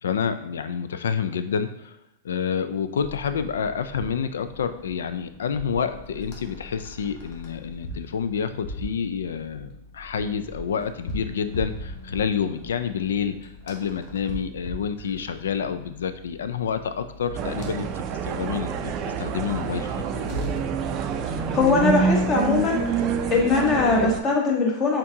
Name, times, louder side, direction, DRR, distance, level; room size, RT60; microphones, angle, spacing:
voice 1, 0.0-2.0 2.2-20.0, left 7 dB, 90° left, 10 dB, 0.3 m, -28 dB
sound 1, 3.0-22.3, left 1 dB, 50° left, 1.1 m, -41 dB
sound 2, 17.3-24.2, right 6 dB, 40° right, 0.4 m, -27 dB
voice 2, 21.5-23.0 23.3-25.0, left 4 dB, 30° left, 0 dB, 1.1 m, -21 dB
4.4 x 3.7 x 2.8 m, 0.87 s
hypercardioid pair, 135°, 0 cm